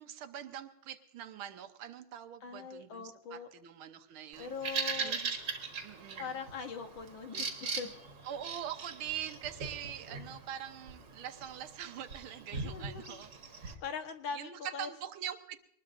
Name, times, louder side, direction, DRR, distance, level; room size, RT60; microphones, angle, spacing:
voice 1, 0.0-5.4 5.8-6.4 8.3-13.3 13.6-13.8 14.3-15.6, right 10 dB, 85° right, 9 dB, 1.7 m, -43 dB
voice 2, 2.4-3.5 4.4-5.2 6.2-7.5 7.8-7.9 12.5-13.2 13.6-14.9, left 6 dB, 70° left, 5 dB, 2.0 m, -41 dB
Bird vocalization bird call bird song, 4.3-13.7, right 4 dB, 55° right, 2.1 m, -40 dB
24.0 x 20.0 x 2.6 m, 0.75 s
omnidirectional pair, 2.2 m